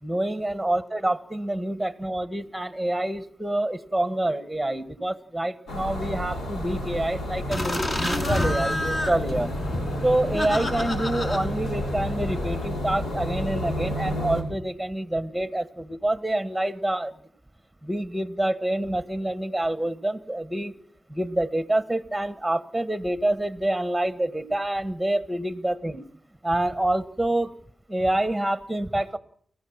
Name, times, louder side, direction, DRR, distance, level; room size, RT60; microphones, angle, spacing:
voice 1, 0.0-9.5 10.0-17.1 17.8-20.7 21.1-26.0 26.4-27.5 27.9-29.2, right 1 dB, 5° right, 10 dB, 1.6 m, -27 dB
sound 1, 5.7-14.4, left 1 dB, 85° left, 6.0 m, -30 dB
sound 2, 7.5-12.7, left 1 dB, 40° left, 5.7 m, -30 dB
29.5 x 14.5 x 7.5 m, 0.64 s
cardioid pair, 65°, 0 cm